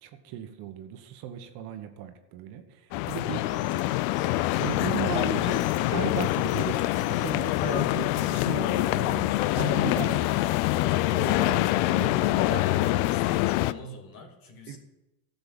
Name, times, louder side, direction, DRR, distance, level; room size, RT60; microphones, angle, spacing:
voice 1, 0.0-3.4 3.7-3.8 4.6-12.7 14.7-14.8, right 9 dB, 50° right, 7 dB, 1.4 m, -37 dB
sound 1, 2.9-13.7, left 17 dB, 60° left, 0.6 m, -25 dB
voice 2, 3.2-4.3 12.5-14.8, left 4 dB, 45° left, 3 dB, 2.5 m, -43 dB
sound 2, 3.5-9.0, left 4 dB, 25° left, 0.9 m, -45 dB
12.0 x 7.0 x 7.2 m, 1.0 s
supercardioid pair, 120°, 47 cm